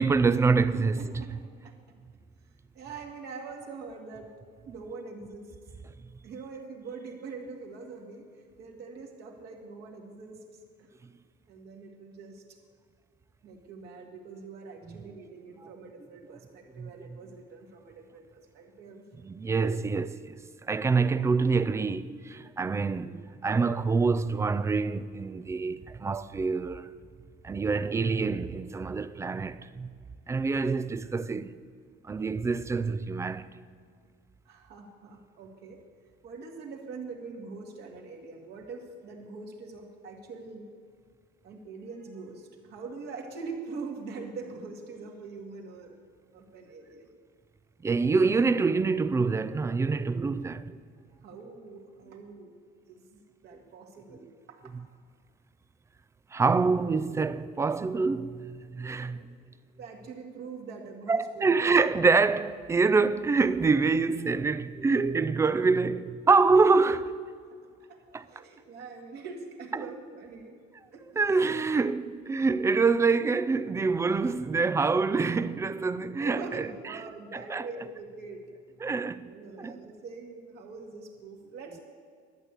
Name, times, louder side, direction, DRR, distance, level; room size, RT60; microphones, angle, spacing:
voice 1, 0.0-1.0 14.9-15.0 16.8-16.9 19.2-27.0 27.4-29.9 30.3-31.6 32.0-33.5 47.8-50.8 56.3-59.2 61.1-67.2 68.1-68.2 71.2-77.0 77.3-77.7 78.8-79.3 79.6-79.8, right 4 dB, 15° right, 0.3 m, -26 dB
voice 2, 0.8-1.3 1.6-1.8 2.7-4.3 4.7-5.6 6.2-10.9 11.5-12.6 13.4-19.0 34.5-35.8 36.2-40.7 41.4-46.0 46.3-47.1 51.2-52.6 52.9-54.7 59.1-59.3 59.8-61.7 67.5-70.6 70.9-71.1 76.2-78.4 79.2-81.8, right 4 dB, 60° right, 2.0 m, -43 dB
11.5 x 8.2 x 8.0 m
cardioid pair, 135°, 19 cm